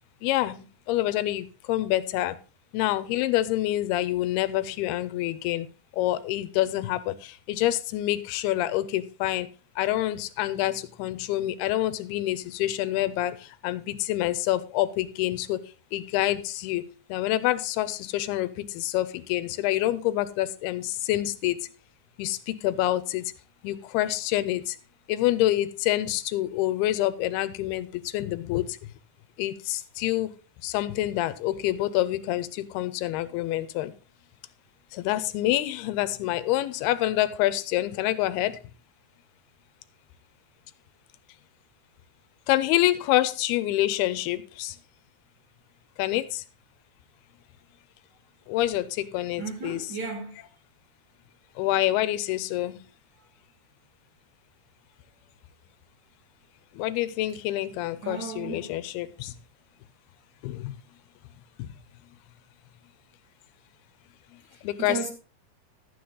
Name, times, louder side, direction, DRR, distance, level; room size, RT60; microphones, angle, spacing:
voice 1, 0.2-2.4 2.7-5.7 6.0-9.5 9.8-13.4 13.6-15.6 15.9-16.8 17.1-21.6 22.2-23.2 23.6-24.8 25.1-27.9 28.1-28.7 29.4-30.3 30.6-33.9 34.9-38.6 42.5-44.8 46.0-46.4 48.5-49.8 51.6-52.8 56.8-59.3 60.4-60.7 61.6-61.7 64.6-65.0, left 14 dB, 80° left, 2.6 m, -27 dB
voice 2, 49.4-50.4 58.0-58.7 64.5-65.1, right 4 dB, 55° right, 1.3 m, -35 dB
12.0 x 8.6 x 3.9 m
omnidirectional pair, 4.6 m